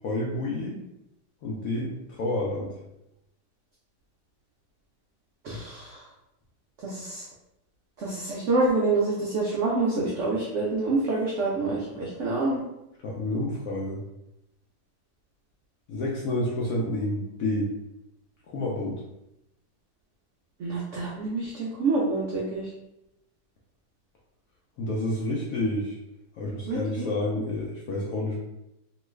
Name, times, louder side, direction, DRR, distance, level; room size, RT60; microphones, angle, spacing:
voice 1, 0.0-0.8 1.4-2.7 13.0-14.0 15.9-17.7 18.5-19.0 24.8-26.0 26.4-28.4, left 1 dB, 70° left, -3 dB, 0.8 m, -29 dB
voice 2, 5.4-6.0 6.8-7.3 8.0-12.6 20.6-22.7 26.7-27.1, right 3 dB, 80° right, -4 dB, 0.6 m, -27 dB
2.9 x 2.3 x 3.1 m, 0.88 s
omnidirectional pair, 1.9 m